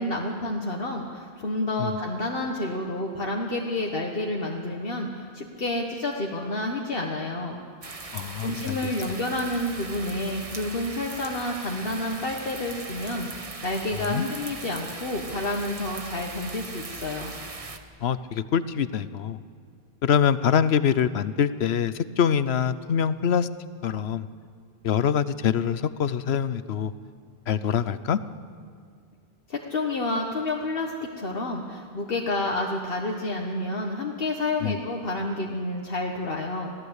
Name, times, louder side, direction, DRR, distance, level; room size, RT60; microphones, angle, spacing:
voice 1, 0.0-7.6 8.4-17.3 29.5-36.7, left 2 dB, 65° left, 0 dB, 1.7 m, -29 dB
sound 1, 7.8-17.8, right 3 dB, 35° right, 1.4 m, -39 dB
voice 2, 8.1-8.9 13.9-14.2 18.0-19.4 20.0-23.5 23.8-24.3 24.8-26.9 27.5-28.2 34.6-34.8, left 8 dB, 85° left, 14 dB, 1.0 m, -24 dB
27.0 x 17.0 x 8.2 m, 2.1 s
omnidirectional pair, 1.0 m